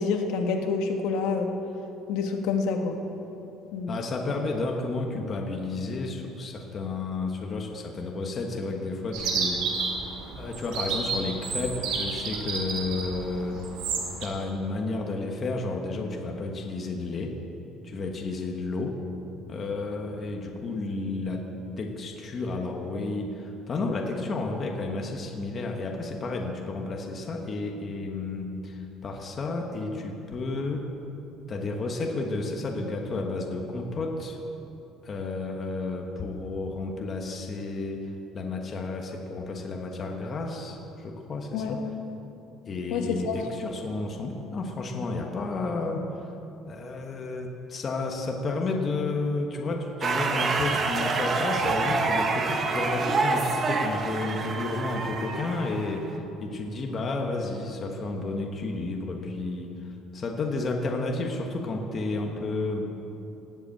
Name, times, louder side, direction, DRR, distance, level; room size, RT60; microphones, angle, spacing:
voice 1, 0.0-1.5 2.1-3.0 3.7-3.9 41.5-41.7 42.9-43.4, left 5 dB, 70° left, 3 dB, 1.6 m, -27 dB
voice 2, 3.9-9.7 10.4-13.7 14.2-17.4 17.8-19.0 19.5-21.5 21.8-30.9 31.5-34.4 35.0-41.9 42.6-46.2 46.7-62.8, left 3 dB, 25° left, 1 dB, 1.2 m, -31 dB
Chirp tweet, 9.1-14.3, right 4 dB, 60° right, 3.0 m, -31 dB
sound 1, 50.0-56.2, right 3 dB, 25° right, 1.1 m, -27 dB
18.0 x 8.2 x 8.5 m, 2.9 s
cardioid pair, 175°, 0 cm